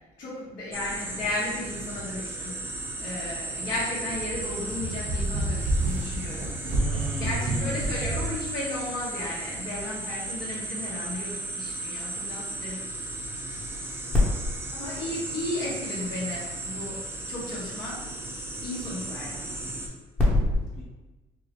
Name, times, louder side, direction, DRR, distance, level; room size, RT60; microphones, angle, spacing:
voice 1, 0.2-2.5 3.0-6.5 7.2-12.8 14.7-17.0 17.3-18.0 18.6-19.4, left 2 dB, 65° left, -10 dB, 1.2 m, -34 dB
sound 1, 0.7-19.9, right 2 dB, 15° right, 0.5 m, -35 dB
sound 2, 4.0-8.4, right 1 dB, 85° right, 0.8 m, -29 dB
voice 2, 6.7-7.8 20.2-20.8, left 1 dB, 15° left, -7 dB, 0.9 m, -27 dB
4.6 x 2.0 x 3.0 m, 1.1 s
cardioid pair, 105°, 15 cm